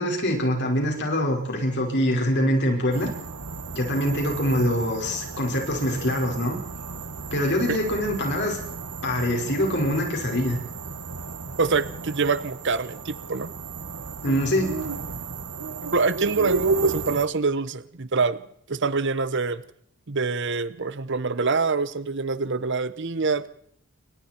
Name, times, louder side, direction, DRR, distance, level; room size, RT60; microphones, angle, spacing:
voice 1, 0.0-3.1 3.8-6.6 7.3-8.6 9.0-10.6 14.2-14.8, equal, 50° left, 1 dB, 5.3 m, -24 dB
sound 1, 2.9-17.3, right 4 dB, 85° right, 1.9 m, -33 dB
voice 2, 11.6-13.5 15.8-18.4 18.7-19.6 20.1-23.5, right 4 dB, 55° right, 14 dB, 1.0 m, -25 dB
29.0 x 25.0 x 4.5 m, 0.70 s
head